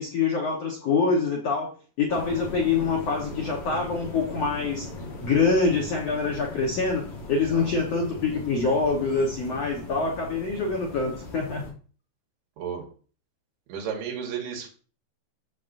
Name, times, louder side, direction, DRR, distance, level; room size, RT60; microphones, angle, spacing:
voice 1, 0.0-1.7 2.0-4.9 5.2-7.0 7.3-11.6, left 4 dB, 75° left, -1 dB, 1.4 m, -25 dB
sound 1, 2.1-11.7, left 2 dB, 45° left, 5.8 m, -39 dB
voice 2, 7.5-7.8 12.6-12.9 13.7-14.7, right 7 dB, 70° right, 0 dB, 3.5 m, -33 dB
9.6 x 7.7 x 2.6 m, 0.40 s
omnidirectional pair, 4.9 m